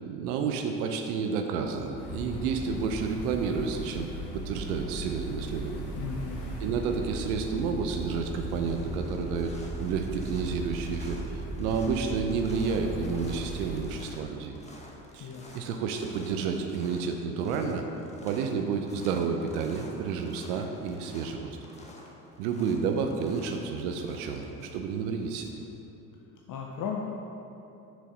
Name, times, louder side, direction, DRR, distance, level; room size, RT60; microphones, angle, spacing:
voice 1, 0.0-5.9 6.6-14.5 15.1-17.8 18.2-21.6 22.4-25.5, right 5 dB, 80° right, 4 dB, 0.6 m, -30 dB
sound 1, 2.0-13.8, right 1 dB, 70° left, 1.3 m, -37 dB
voice 2, 6.0-6.4 15.2-15.5 26.5-27.0, left 7 dB, 45° left, -1 dB, 0.7 m, -35 dB
sound 2, 7.8-25.7, left 1 dB, 15° left, 1.0 m, -50 dB
6.1 x 4.1 x 4.8 m, 2.9 s
hypercardioid pair, 75°, 43 cm